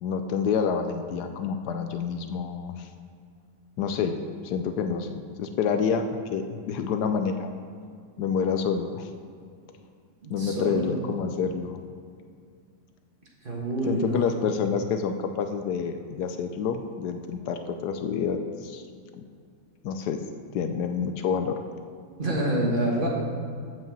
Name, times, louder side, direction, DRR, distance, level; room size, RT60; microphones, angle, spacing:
voice 1, 0.0-2.9 3.8-4.1 4.4-6.0 6.3-7.5 8.2-9.1 10.3-11.8 13.9-18.8 19.8-20.2 20.5-21.5, left 6 dB, 75° left, 7 dB, 1.1 m, -28 dB
voice 2, 10.2-11.0 13.4-14.3 22.2-23.1, right 1 dB, 35° right, -3 dB, 1.4 m, -27 dB
7.7 x 5.5 x 7.3 m, 2.2 s
omnidirectional pair, 1.8 m